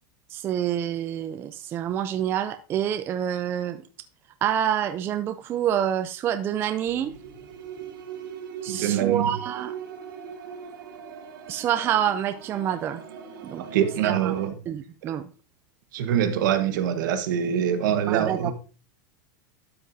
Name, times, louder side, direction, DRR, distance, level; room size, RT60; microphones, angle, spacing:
voice 1, 0.3-3.8 4.4-7.1 8.6-9.7 11.5-13.0 13.4-13.6 14.0-14.3 14.7-15.2 18.1-18.5, right 10 dB, 20° right, 0.4 m, -27 dB
sound 1, 6.9-14.5, right 7 dB, 85° right, 1.8 m, -40 dB
voice 2, 8.7-9.3 13.6-14.6 15.0-15.1 15.9-18.5, right 9 dB, 65° right, 1.3 m, -24 dB
12.0 x 5.8 x 2.7 m
supercardioid pair, 165°, 11 cm